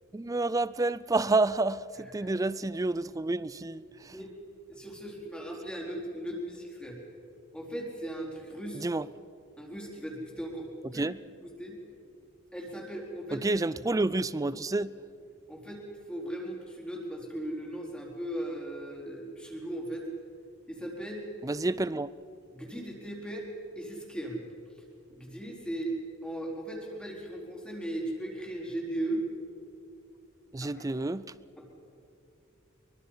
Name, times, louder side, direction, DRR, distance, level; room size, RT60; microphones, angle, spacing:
voice 1, 0.1-4.1 8.8-9.1 10.9-11.2 13.3-14.9 21.4-22.1 30.5-31.2, right 2 dB, 15° right, 0.4 m, -29 dB
voice 2, 2.0-2.3 4.1-4.3 4.7-7.0 7.5-8.9 9.6-11.0 11.4-11.8 12.5-13.6 15.5-20.1 20.7-21.2 22.5-23.5 23.8-24.4 25.1-25.9 26.2-29.2 30.6-30.8 31.6-31.7, right 1 dB, 5° left, 4.1 m, -37 dB
24.0 x 24.0 x 5.7 m
head